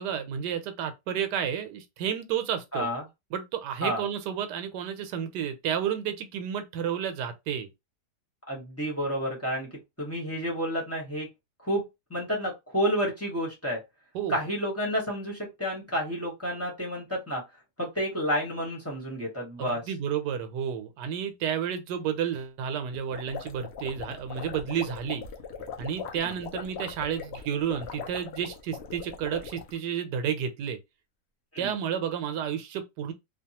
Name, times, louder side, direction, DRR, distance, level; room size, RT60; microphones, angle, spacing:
voice 1, 0.0-2.9 3.3-7.7 14.1-14.4 19.6-25.2 25.8-30.8 31.6-33.1, right 8 dB, 85° right, 1.2 m, -31 dB
voice 2, 2.7-3.0 3.8-4.0 8.5-9.7 10.0-11.3 11.6-13.8 14.3-17.4 17.8-19.8 31.5-31.7, equal, 10° left, 0.9 m, -30 dB
sound 1, 22.9-29.8, left 6 dB, 75° left, 0.6 m, -40 dB
2.9 x 2.3 x 2.8 m
omnidirectional pair, 1.8 m